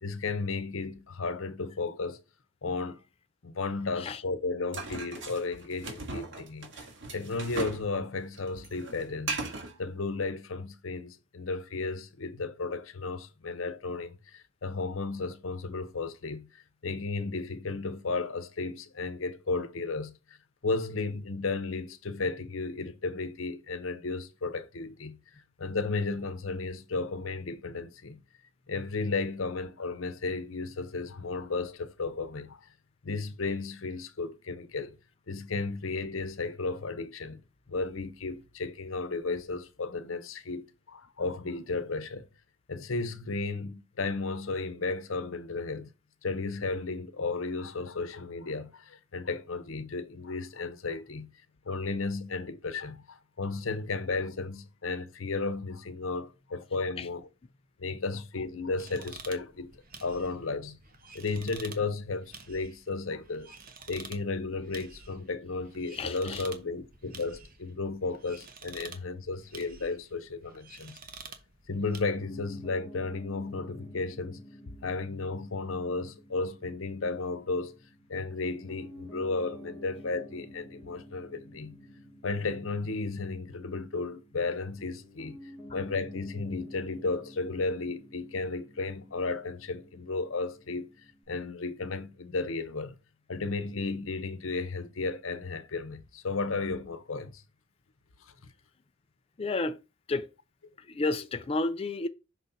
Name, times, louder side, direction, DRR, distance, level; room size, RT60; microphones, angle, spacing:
voice 1, 0.0-2.2 2.6-3.0 3.4-6.7 7.1-9.4 9.8-20.4 20.6-25.2 25.6-28.2 28.7-32.7 33.0-35.0 35.3-37.4 37.7-42.3 42.7-45.9 46.2-51.3 51.6-57.3 57.8-60.8 61.1-63.6 63.9-71.0 71.7-74.4 74.8-77.7 78.1-81.8 82.2-90.9 91.3-92.9 93.3-97.4 98.2-98.3, left 3 dB, 85° left, 0.8 m, -34 dB
sound 1, 4.7-7.9 8.1-9.7, right 3 dB, 65° right, 1.8 m, -37 dB
sound 2, 58.8-72.0, right 5 dB, 45° right, 1.2 m, -49 dB
voice 2, 65.9-66.4 99.4-99.8 100.1-100.3 100.9-102.1, left 3 dB, 30° left, 0.5 m, -31 dB
Piano, 71.8-91.2, equal, ahead, 2.2 m, -50 dB
6.2 x 4.1 x 4.0 m
head